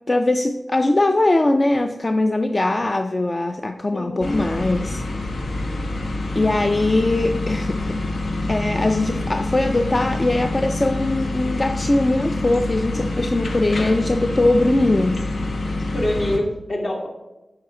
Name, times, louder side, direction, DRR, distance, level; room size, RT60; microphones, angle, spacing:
voice 1, 0.1-5.0 5.5-5.7 6.3-15.2, left 2 dB, 35° left, 7 dB, 0.4 m, -21 dB
voice 2, 3.9-4.5 15.9-17.1, left 1 dB, 60° left, -1 dB, 2.1 m, -25 dB
sound 1, 4.2-16.4, left 2 dB, 80° left, 0.9 m, -26 dB
9.0 x 5.5 x 3.7 m, 1.0 s
wide cardioid pair, 75°, 0 cm